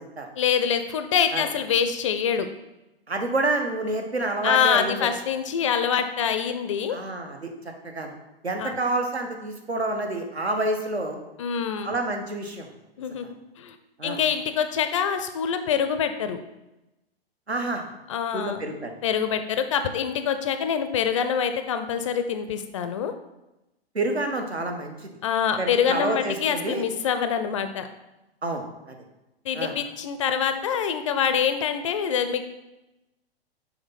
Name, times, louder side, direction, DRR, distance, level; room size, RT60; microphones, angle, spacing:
voice 1, 0.4-2.5 4.4-7.0 8.6-8.8 11.4-12.0 13.0-13.3 13.6-13.8 14.0-16.4 18.1-18.6 19.0-23.1 25.2-27.9 29.5-32.4, left 7 dB, 30° left, 9 dB, 0.4 m, -25 dB
voice 2, 3.1-5.1 6.9-7.5 7.8-8.1 8.4-11.2 11.8-12.7 13.2-13.3 14.0-14.2 17.5-17.9 18.3-18.9 23.9-25.1 25.6-26.8 28.4-28.9 29.5-29.7, right 2 dB, 85° right, 4 dB, 1.1 m, -28 dB
6.3 x 4.4 x 4.0 m, 0.97 s
figure-of-eight pair, 115°, 31 cm